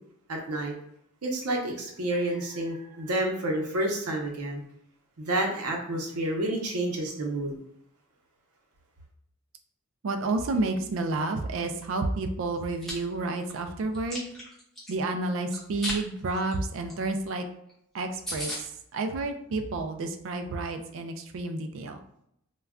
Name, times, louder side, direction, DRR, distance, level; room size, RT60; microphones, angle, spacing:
voice 1, 0.3-0.7 1.2-4.6 5.2-7.6, right 1 dB, 90° right, 1 dB, 0.7 m, -29 dB
voice 2, 10.0-14.3 14.9-17.5 17.9-22.0, right 2 dB, 60° right, 6 dB, 0.3 m, -30 dB
Chewing mastication, 12.6-12.9 13.4-14.9 15.5-16.0 16.3-16.5 16.9-17.0 17.2-17.3 17.7-17.8 18.0-18.1 18.3-18.6, left 1 dB, ahead, 0.6 m, -35 dB
2.2 x 2.2 x 3.5 m, 0.73 s
head